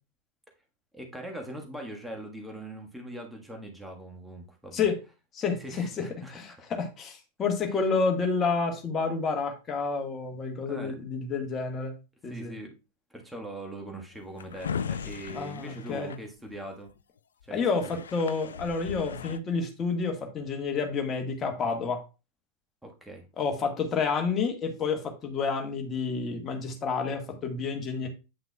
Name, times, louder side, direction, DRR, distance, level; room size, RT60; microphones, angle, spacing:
voice 1, 0.9-4.8 5.6-6.3 7.7-7.8 10.7-11.0 12.3-12.7 13.1-16.9 17.5-18.0 22.8-23.3, right 1 dB, 5° right, 2 dB, 1.5 m, -41 dB
voice 2, 5.3-6.0 6.3-12.0 12.2-12.5 15.3-16.1 17.5-22.0 23.4-28.1, left 4 dB, 25° left, 3 dB, 1.6 m, -29 dB
Drawer open or close, 14.1-16.9 17.4-17.5 17.7-19.4, left 7 dB, 65° left, 0.3 m, -37 dB
8.7 x 5.8 x 2.3 m, 0.29 s
figure-of-eight pair, 90°, 0 cm